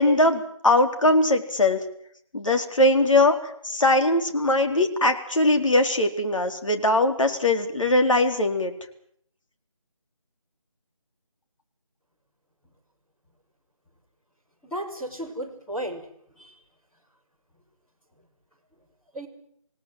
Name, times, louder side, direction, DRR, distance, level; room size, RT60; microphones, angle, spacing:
voice 1, 0.0-1.8 2.3-3.4 3.6-8.7, left 2 dB, 65° left, 5 dB, 4.2 m, -21 dB
voice 2, 14.6-16.0 16.4-16.5 19.1-19.3, right 1 dB, 5° left, -7 dB, 3.6 m, -33 dB
27.0 x 18.0 x 7.8 m, 0.68 s
figure-of-eight pair, 165°, 18 cm